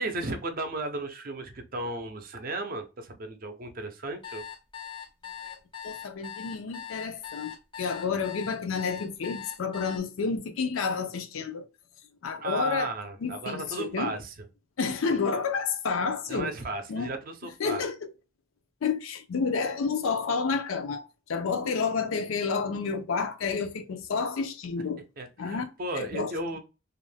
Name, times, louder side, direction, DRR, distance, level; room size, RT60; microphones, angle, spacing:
voice 1, 0.0-4.4 12.4-14.4 16.3-17.8 25.2-26.6, right 2 dB, 45° right, 0.5 m, -34 dB
sound 1, 4.2-10.0, left 9 dB, 25° left, 0.4 m, -41 dB
voice 2, 5.8-11.6 12.2-12.9 13.2-14.1 14.8-16.5 16.9-17.1 17.6-18.1 18.8-25.0 25.4-25.7 26.0-26.3, left 5 dB, 85° left, 0.4 m, -30 dB
2.4 x 2.1 x 3.2 m
head